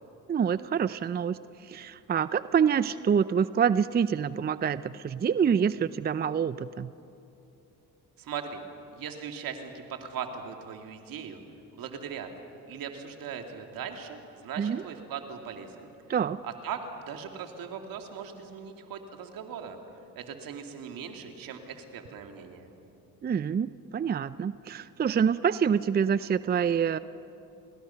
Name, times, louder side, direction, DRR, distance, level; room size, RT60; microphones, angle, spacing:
voice 1, 0.3-6.9 14.6-14.8 16.1-16.4 23.2-27.0, right 7 dB, 25° right, 15 dB, 0.5 m, -26 dB
voice 2, 8.2-8.6 8.9-11.4 11.7-12.3 12.7-15.9 16.4-19.8 20.2-22.7, right 7 dB, 70° right, 4 dB, 2.6 m, -39 dB
30.0 x 21.0 x 5.8 m, 2.8 s
supercardioid pair, 70°, 36 cm